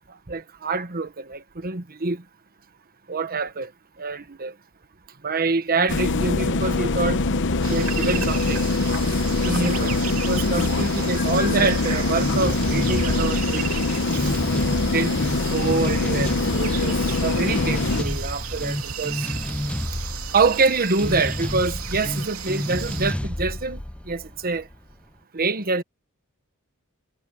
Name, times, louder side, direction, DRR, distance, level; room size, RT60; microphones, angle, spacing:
voice 1, 0.3-2.2 3.1-3.7 4.0-4.5 5.2-7.2 7.7-8.6 9.4-10.0 10.3-13.7 14.9-15.2 15.5-19.3 20.3-23.8 24.1-24.7 25.3-25.8, right 4 dB, 45° right, 1.3 m, -25 dB
sound 1, 5.9-18.0, left 3 dB, 55° left, 0.9 m, -23 dB
sound 2, 7.6-23.1, right 8 dB, 70° right, 3.1 m, -35 dB
sound 3, 12.2-24.9, left 1 dB, 5° left, 0.4 m, -30 dB
head